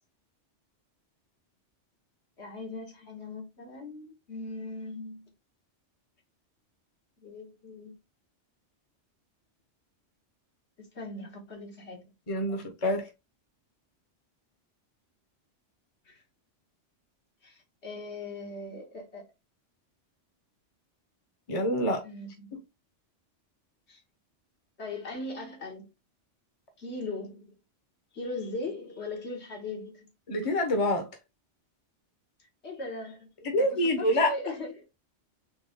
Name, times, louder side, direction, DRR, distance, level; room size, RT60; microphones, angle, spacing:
voice 1, 2.4-5.3 7.2-7.9 10.8-12.0 12.5-12.7 16.0-16.2 17.4-19.3 22.0-22.5 23.9-24.0 24.8-25.9 26.8-27.6 28.1-30.1 32.6-33.3 33.6-34.8, left 2 dB, 65° left, 1.6 m, -39 dB
voice 2, 12.3-13.1 21.5-22.0 30.3-31.1 33.4-34.3, left 1 dB, 30° left, 1.0 m, -26 dB
4.1 x 3.0 x 3.7 m
omnidirectional pair, 1.2 m